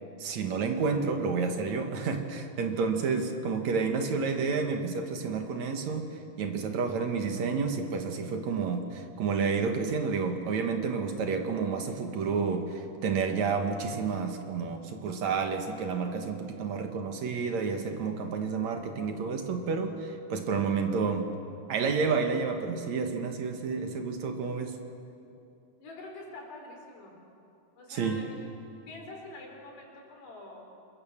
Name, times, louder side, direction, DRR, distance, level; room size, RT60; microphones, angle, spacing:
voice 1, 0.2-21.3 21.7-24.8 27.9-28.2, right 5 dB, 60° right, 5 dB, 2.2 m, -30 dB
voice 2, 2.8-3.2 25.8-27.2 27.8-30.7, left 2 dB, 85° left, 1 dB, 6.0 m, -46 dB
26.5 x 22.0 x 7.3 m, 2.7 s
omnidirectional pair, 4.6 m